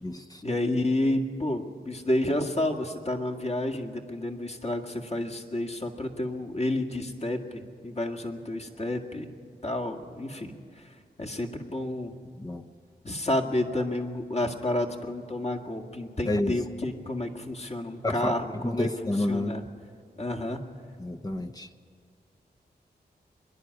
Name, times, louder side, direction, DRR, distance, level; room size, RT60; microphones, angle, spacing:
voice 1, 0.4-9.3 9.6-10.5 11.2-12.1 13.0-19.6 20.2-20.6, left 1 dB, 40° left, 2.0 m, -30 dB
voice 2, 18.6-19.5 21.0-21.7, left 1 dB, 20° left, 0.9 m, -29 dB
24.5 x 11.0 x 9.7 m
cardioid pair, 60°, 18 cm